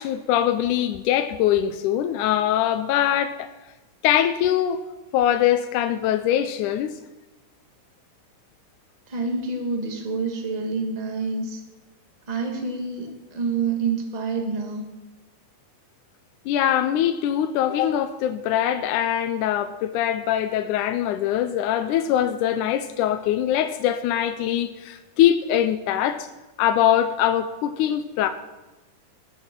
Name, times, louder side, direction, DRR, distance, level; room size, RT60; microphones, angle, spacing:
voice 1, 0.0-3.5 4.0-4.8 5.1-6.9 16.5-26.3 26.6-28.3, left 11 dB, 80° left, 9 dB, 2.1 m, -22 dB
voice 2, 9.1-11.6 12.3-14.9, right 4 dB, 20° right, 2 dB, 1.2 m, -27 dB
20.5 x 7.8 x 6.0 m, 1.1 s
omnidirectional pair, 3.6 m